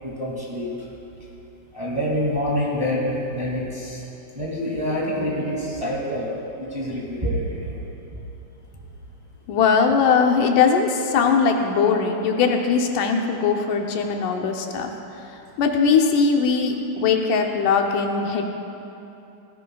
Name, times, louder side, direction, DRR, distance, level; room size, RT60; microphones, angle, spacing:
voice 1, 0.0-0.7 1.7-4.0 4.3-6.3 6.6-7.7, equal, 10° right, -6 dB, 1.8 m, -26 dB
voice 2, 9.5-14.9 15.6-18.5, left 5 dB, 80° left, 3 dB, 2.3 m, -20 dB
18.0 x 14.5 x 2.3 m, 2.9 s
omnidirectional pair, 3.7 m